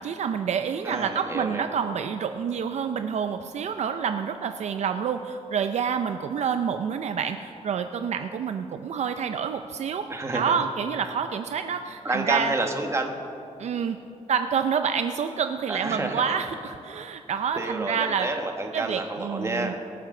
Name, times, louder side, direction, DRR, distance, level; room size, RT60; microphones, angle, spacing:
voice 1, 0.0-10.1 10.3-12.5 13.6-14.0 14.3-18.3 18.7-19.7, right 7 dB, 65° right, 8 dB, 0.5 m, -28 dB
voice 2, 0.8-1.7 10.1-10.5 12.0-13.1 15.7-16.4 17.5-19.8, right 2 dB, 20° right, 3 dB, 1.3 m, -29 dB
23.0 x 7.9 x 3.8 m, 2.6 s
wide cardioid pair, 115°, 12 cm